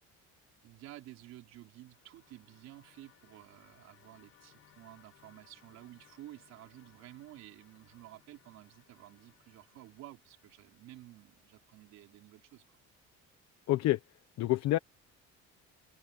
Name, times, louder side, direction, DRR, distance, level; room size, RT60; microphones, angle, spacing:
voice 1, 0.6-12.8, right 15 dB, 65° right, 3.8 m, -53 dB
sound 1, 1.6-11.9, left 12 dB, 50° left, 7.4 m, -66 dB
voice 2, 13.7-14.0 14.4-14.8, left 16 dB, 65° left, 1.2 m, -27 dB
open air
cardioid pair, 175°, 29 cm